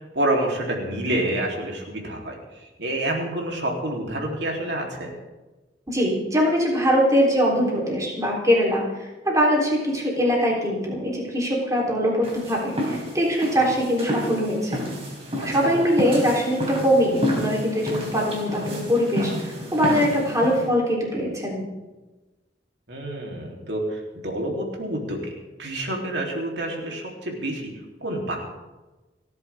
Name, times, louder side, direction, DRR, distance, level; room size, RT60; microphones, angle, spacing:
voice 1, 0.1-2.4 2.8-5.1 15.6-15.7 22.9-25.3 25.6-27.7 28.0-28.4, right 1 dB, 90° right, 0 dB, 3.4 m, -28 dB
voice 2, 5.9-14.9 15.4-21.7, equal, 20° right, -3 dB, 3.6 m, -22 dB
sound 1, 12.2-20.7, equal, 35° right, 4.1 m, -30 dB
30.0 x 10.5 x 3.6 m, 1.1 s
head